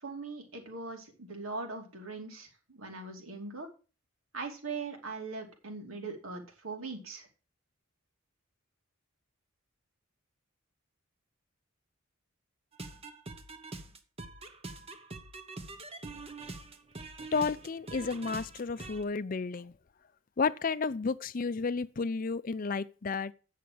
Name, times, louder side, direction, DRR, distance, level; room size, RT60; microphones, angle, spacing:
voice 1, 0.0-3.7 4.3-7.3, right 3 dB, 85° right, 2.8 m, -40 dB
sound 1, 12.7-19.0, right 3 dB, 30° right, 1.1 m, -45 dB
voice 2, 17.3-19.7 20.4-23.3, left 4 dB, 40° left, 0.5 m, -32 dB
8.6 x 6.5 x 7.6 m
head